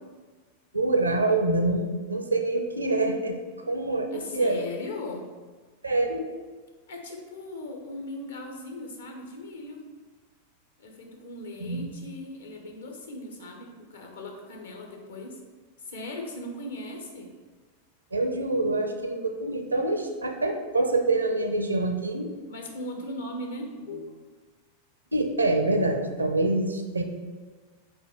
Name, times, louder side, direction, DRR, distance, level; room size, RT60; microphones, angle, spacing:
voice 1, 0.7-3.4 3.7-4.6 5.8-6.3 11.6-11.9 18.1-22.3 25.1-27.0, right 2 dB, 80° right, 5 dB, 0.6 m, -26 dB
voice 2, 4.1-5.3 6.9-9.8 10.8-15.4 15.8-17.3 22.5-24.2, left 1 dB, 65° left, 2 dB, 1.0 m, -38 dB
5.3 x 4.2 x 4.4 m, 1.4 s
figure-of-eight pair, 90°, 0 cm